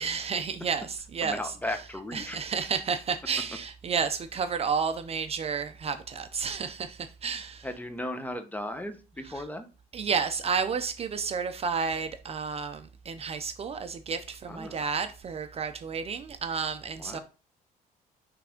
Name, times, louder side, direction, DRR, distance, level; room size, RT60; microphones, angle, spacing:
voice 1, 0.0-1.5 2.1-7.7 9.3-9.4 9.9-17.2, right 6 dB, 35° right, 0.5 m, -31 dB
voice 2, 1.2-2.4 7.6-9.7 14.5-14.8 17.0-17.2, left 1 dB, 10° left, 0.9 m, -36 dB
5.9 x 3.4 x 5.1 m
cardioid pair, 110°, 17 cm